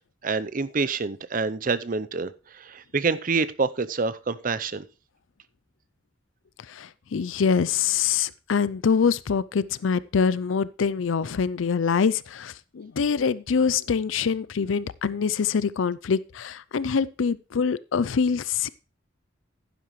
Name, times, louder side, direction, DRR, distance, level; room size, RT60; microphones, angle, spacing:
voice 1, 0.2-2.3 2.6-4.8, right 4 dB, 45° right, 0.6 m, -27 dB
voice 2, 6.7-18.7, left 6 dB, 85° left, 0.5 m, -25 dB
11.5 x 10.5 x 3.1 m
head